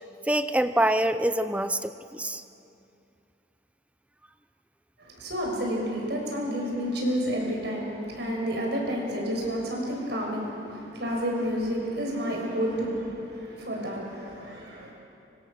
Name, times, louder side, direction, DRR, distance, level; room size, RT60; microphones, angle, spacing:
voice 1, 0.3-2.4, right 1 dB, 5° right, 11 dB, 0.5 m, -25 dB
voice 2, 5.0-14.9, equal, 60° right, -1 dB, 6.2 m, -30 dB
25.0 x 24.5 x 6.8 m, 2.6 s
head